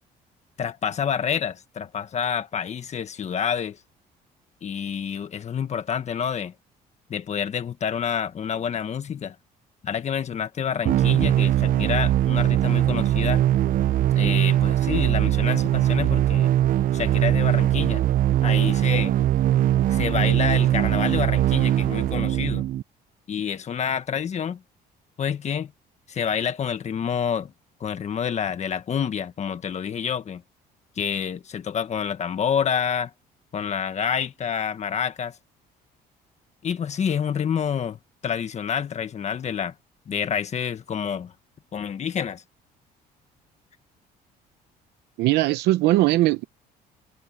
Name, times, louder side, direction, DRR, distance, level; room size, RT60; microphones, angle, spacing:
voice 1, 0.6-3.8 4.6-6.5 7.1-9.4 9.8-13.4 14.2-16.5 16.9-18.0 18.4-19.1 19.9-22.6 23.3-24.6 25.2-25.7 26.1-27.5 27.8-30.4 31.0-33.1 33.5-35.4 36.6-39.7 40.1-41.3 41.7-42.4, left 7 dB, 40° left, 1.5 m, -28 dB
sound 1, 10.9-22.8, right 12 dB, 55° right, 0.6 m, -21 dB
voice 2, 45.2-46.4, right 17 dB, 85° right, 0.8 m, -20 dB
cardioid pair, 110°, 17 cm